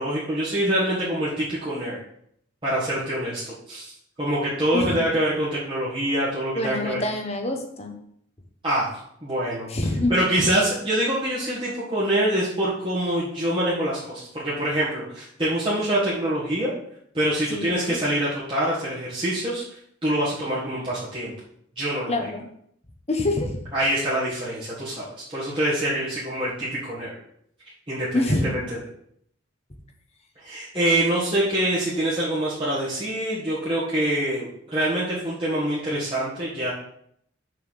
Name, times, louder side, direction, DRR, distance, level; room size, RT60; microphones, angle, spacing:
voice 1, 0.0-2.0 2.6-7.0 8.6-8.9 9.2-9.7 10.1-16.7 17.1-19.6 20.0-21.3 21.8-22.3 23.7-27.1 27.9-28.8 30.4-36.7, right 1 dB, 25° right, -10 dB, 1.8 m, -25 dB
voice 2, 6.5-8.0 9.7-10.2 17.5-18.0 22.1-22.5 23.1-23.6 28.1-28.5, left 1 dB, 30° left, 4 dB, 1.2 m, -25 dB
6.7 x 4.6 x 6.5 m, 0.69 s
head